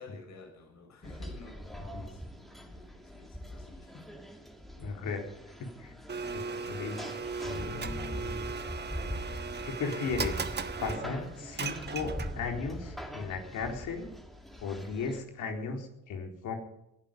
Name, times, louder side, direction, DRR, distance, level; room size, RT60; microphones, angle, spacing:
voice 1, 0.0-4.4, left 4 dB, 65° left, 2 dB, 6.4 m, -52 dB
sound 1, 1.0-15.2, equal, ahead, 2.5 m, -42 dB
voice 2, 4.8-5.2 5.8-5.9 6.3-7.0 7.4-8.5 9.6-10.5 10.8-14.1 14.6-16.6, left 4 dB, 80° left, 2 dB, 4.1 m, -36 dB
Domestic sounds home sounds, 6.1-12.6, right 5 dB, 35° right, 1.4 m, -38 dB
20.5 x 13.0 x 5.4 m, 0.83 s
cardioid pair, 90°, 30 cm